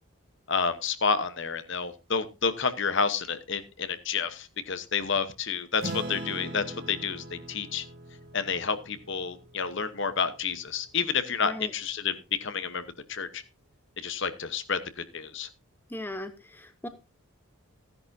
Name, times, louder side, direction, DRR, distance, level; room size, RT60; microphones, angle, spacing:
voice 1, 0.5-7.8 8.3-12.8 13.1-13.4 14.0-15.5, left 6 dB, 55° left, 12 dB, 1.0 m, -30 dB
Acoustic guitar / Strum, 5.8-10.6, right 1 dB, 45° right, 2.1 m, -41 dB
voice 2, 15.9-16.9, left 1 dB, 10° left, 9 dB, 0.9 m, -38 dB
15.5 x 10.5 x 2.7 m, 0.27 s
head